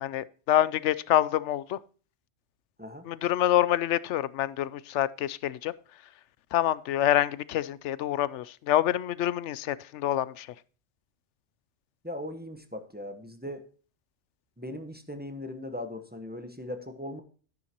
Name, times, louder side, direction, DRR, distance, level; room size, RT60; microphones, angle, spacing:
voice 1, 0.0-1.8 3.0-5.7 6.5-10.5, left 12 dB, 85° left, 0.9 m, -26 dB
voice 2, 12.0-13.6 14.6-17.2, left 1 dB, 10° right, 1.0 m, -39 dB
10.5 x 9.9 x 2.9 m
omnidirectional pair, 1.2 m